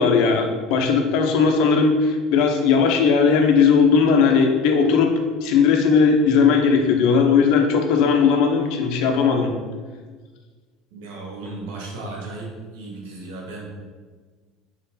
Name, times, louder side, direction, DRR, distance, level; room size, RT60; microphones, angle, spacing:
voice 1, 0.0-5.1 5.4-9.5, left 5 dB, 70° left, 3 dB, 1.1 m, -17 dB
voice 2, 10.9-13.7, right 2 dB, 85° right, -2 dB, 1.6 m, -35 dB
4.7 x 4.5 x 5.7 m, 1.4 s
cardioid pair, 130°, 0 cm